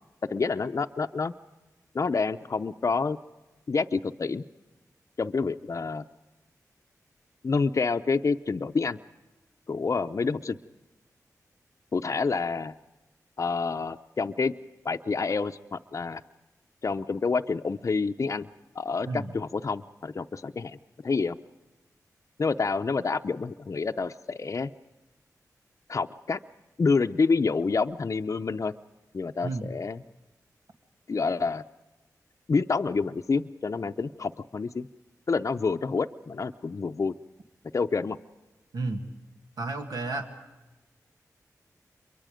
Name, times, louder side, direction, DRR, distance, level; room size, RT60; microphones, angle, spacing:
voice 1, 0.3-1.3 1.9-3.2 3.7-4.4 5.2-6.0 7.4-9.0 9.7-10.6 11.9-12.7 13.4-14.5 14.8-16.2 16.8-18.5 18.8-20.8 21.0-21.4 22.4-24.7 25.9-26.4 26.8-28.7 29.1-30.0 31.1-31.6 32.5-34.9 35.3-37.1 37.7-38.2, left 4 dB, 50° left, 6 dB, 0.6 m, -28 dB
voice 2, 29.4-29.7 38.7-39.0 39.6-40.3, right 3 dB, 80° right, 3 dB, 2.1 m, -32 dB
27.5 x 23.5 x 5.1 m, 1.1 s
cardioid pair, 50°, 7 cm